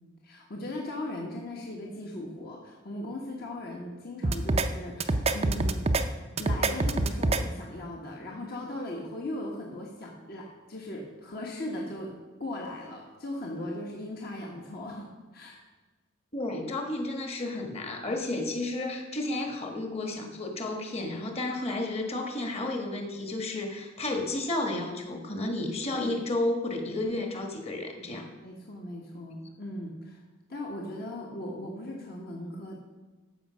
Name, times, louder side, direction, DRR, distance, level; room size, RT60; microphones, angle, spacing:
voice 1, 0.2-5.9 6.4-12.1 12.4-15.6 25.9-26.2 28.4-30.2 30.5-32.8, left 1 dB, 50° left, -1 dB, 1.4 m, -38 dB
sound 1, 4.2-4.7 5.0-6.0 6.4-7.4, right 2 dB, 30° right, 0.5 m, -25 dB
voice 2, 16.3-28.3, left 2 dB, 30° left, 3 dB, 1.4 m, -32 dB
14.0 x 5.4 x 6.2 m, 1.3 s
head